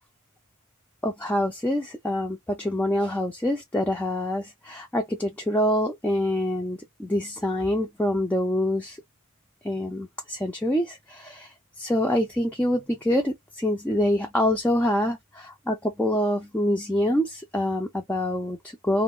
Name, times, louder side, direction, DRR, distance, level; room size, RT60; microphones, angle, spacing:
voice 1, 1.0-9.0 9.6-19.0, left 1 dB, 5° left, 0.4 m, -26 dB
2.4 x 2.0 x 3.6 m
head